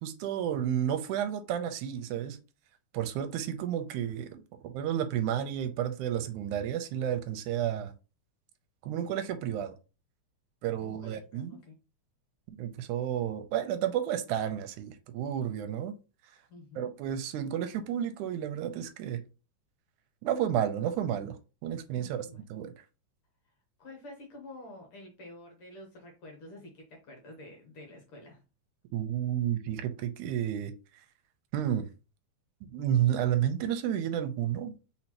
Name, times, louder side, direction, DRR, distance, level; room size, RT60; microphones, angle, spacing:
voice 1, 0.0-2.4 2.9-7.9 8.8-9.7 10.6-11.6 12.6-15.9 16.8-19.2 20.2-21.3 21.6-22.3 22.5-22.7 28.9-30.7 31.5-31.9 32.7-34.7, right 10 dB, 85° right, 2.1 m, -31 dB
voice 2, 10.8-11.8 16.5-16.9 21.9-22.4 23.8-28.4, left 1 dB, 60° left, 1.6 m, -49 dB
4.2 x 4.2 x 2.9 m
omnidirectional pair, 3.4 m